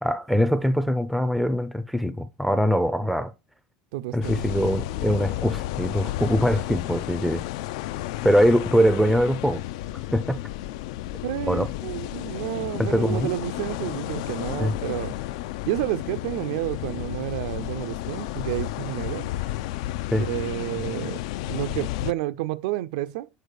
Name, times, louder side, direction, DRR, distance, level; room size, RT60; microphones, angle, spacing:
voice 1, 0.0-3.3 4.1-7.4 8.2-9.6 10.1-10.4 11.5-11.7 12.8-13.3 14.6-14.7 20.1-20.3, equal, ahead, 0.4 m, -22 dB
voice 2, 3.9-4.5 11.2-15.2 15.7-19.3 20.2-23.3, right 15 dB, 75° right, 0.4 m, -30 dB
sound 1, 4.2-22.1, left 15 dB, 80° left, 0.3 m, -32 dB
sound 2, 4.3-7.9, left 7 dB, 55° left, 1.3 m, -43 dB
6.7 x 5.0 x 6.3 m
cardioid pair, 175°, 4 cm